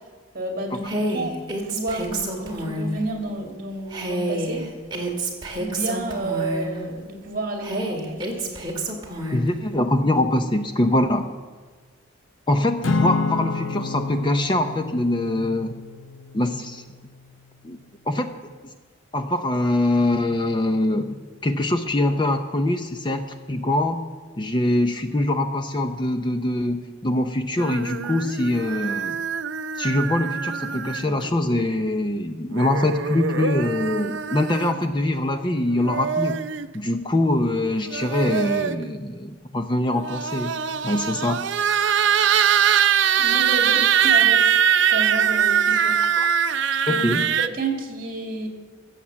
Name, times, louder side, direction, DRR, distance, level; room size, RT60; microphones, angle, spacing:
voice 1, 0.3-4.7 5.6-8.6 43.2-44.6 44.9-46.0 46.7-47.1 47.4-48.5, right 2 dB, 45° right, 2 dB, 2.3 m, -31 dB
Female speech woman speaking, 0.8-3.0 3.9-6.8 7.6-9.5, right 1 dB, 25° right, 2.0 m, -28 dB
voice 2, 9.3-11.3 12.5-15.8 16.3-16.8 17.6-17.8 18.1-18.3 19.1-24.0 24.4-29.2 29.8-36.4 36.7-40.5 40.8-41.4 43.8-43.9 46.2-46.3 46.9-47.3, left 1 dB, 25° left, 7 dB, 0.6 m, -23 dB
Acoustic guitar / Strum, 12.8-17.3, left 3 dB, 80° left, 0.6 m, -29 dB
sound 1, 27.6-31.3 32.5-34.8 35.7-36.7 37.7-38.9 39.9-47.5, right 8 dB, 65° right, 0.5 m, -22 dB
15.5 x 7.4 x 7.4 m, 1.4 s
head